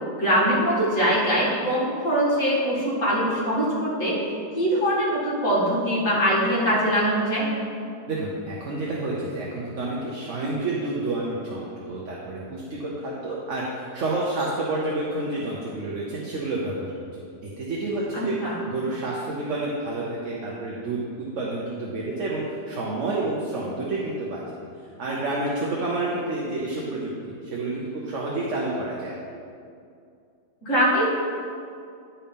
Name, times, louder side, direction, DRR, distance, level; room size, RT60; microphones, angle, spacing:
voice 1, 0.2-4.2 4.5-7.5 18.1-18.6 30.6-31.1, equal, 50° left, -6 dB, 2.3 m, -22 dB
voice 2, 8.1-16.9 17.4-18.4 18.7-24.4 25.0-27.1 27.5-29.2, right 2 dB, 50° right, -5 dB, 1.2 m, -29 dB
9.8 x 4.3 x 5.3 m, 2.4 s
omnidirectional pair, 1.8 m